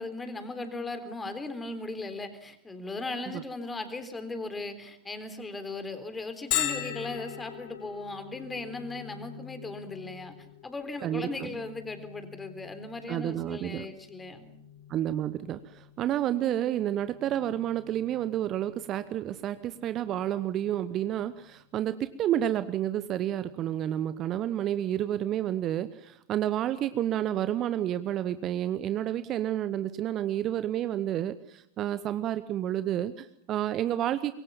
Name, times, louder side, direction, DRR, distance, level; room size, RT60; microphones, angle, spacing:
voice 1, 0.0-10.4 10.6-14.5, left 2 dB, 10° left, 9 dB, 3.9 m, -37 dB
Bell, 6.5-21.9, left 12 dB, 45° left, 4.0 m, -41 dB
voice 2, 11.0-11.6 13.1-13.9 14.9-34.3, right 11 dB, 30° right, 13 dB, 1.0 m, -30 dB
25.5 x 23.0 x 7.3 m, 0.72 s
figure-of-eight pair, 90°, 0 cm